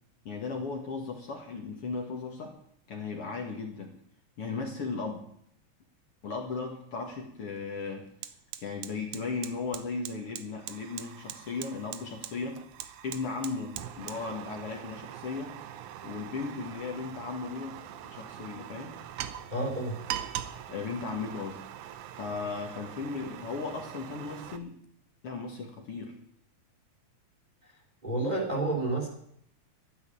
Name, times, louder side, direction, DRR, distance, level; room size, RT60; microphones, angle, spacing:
voice 1, 0.2-2.6 2.9-3.9 4.4-5.2 6.2-8.1 8.6-12.6 13.0-15.5 16.0-17.8 18.0-19.0 20.7-21.6 22.1-24.8 25.2-26.2, left 4 dB, 50° left, 1 dB, 2.6 m, -36 dB
Fire, 7.1-7.2 7.6-24.6, right 11 dB, 85° right, 2.3 m, -42 dB
voice 2, 19.5-20.0 28.0-29.1, right 2 dB, 15° right, 2 dB, 3.4 m, -29 dB
12.5 x 10.5 x 8.7 m, 0.69 s
omnidirectional pair, 3.3 m